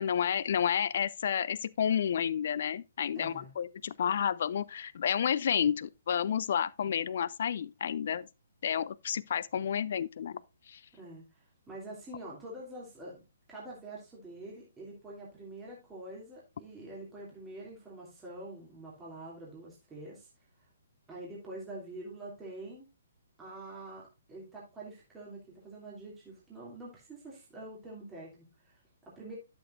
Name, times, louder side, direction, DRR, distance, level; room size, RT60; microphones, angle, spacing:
voice 1, 0.0-8.3 8.6-10.4 10.7-10.8, left 8 dB, 55° left, 0.3 m, -30 dB
voice 2, 3.1-3.5 6.8-6.9 10.9-13.2 13.5-20.3 20.6-20.7 21.1-22.9 23.4-29.4, right 2 dB, 10° right, 2.7 m, -46 dB
11.5 x 7.1 x 2.5 m
figure-of-eight pair, 130°, 0 cm